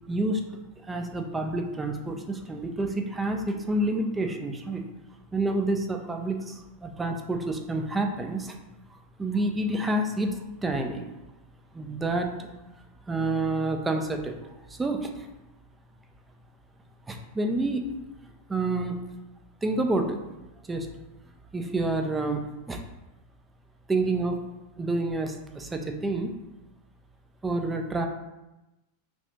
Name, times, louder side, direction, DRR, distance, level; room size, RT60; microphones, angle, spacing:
voice 1, 0.1-0.5 0.9-4.8 5.3-8.6 8.9-11.1 11.7-12.5 13.1-15.3 17.1-17.9 18.5-19.0 19.6-20.2 20.6-20.9 21.5-22.8 23.9-24.4 24.8-26.3 27.4-28.1, right 2 dB, 10° right, 4 dB, 0.4 m, -28 dB
2.7 x 2.5 x 3.4 m, 0.99 s
figure-of-eight pair, 90°, 0 cm